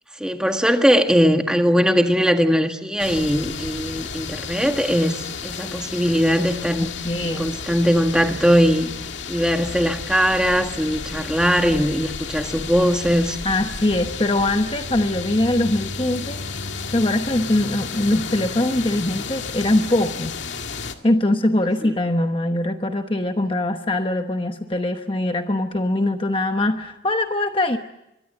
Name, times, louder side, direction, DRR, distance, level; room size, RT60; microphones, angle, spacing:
voice 1, 0.2-5.2 5.4-6.9 7.2-8.9 9.3-13.4 21.8-21.9, equal, 5° right, 5 dB, 1.7 m, -20 dB
sound 1, 3.0-20.9, left 5 dB, 80° left, 1.9 m, -32 dB
voice 2, 6.8-7.5 13.4-16.4 16.9-20.3 20.8-27.8, left 1 dB, 30° left, 6 dB, 1.1 m, -22 dB
24.5 x 23.5 x 7.8 m, 0.88 s
head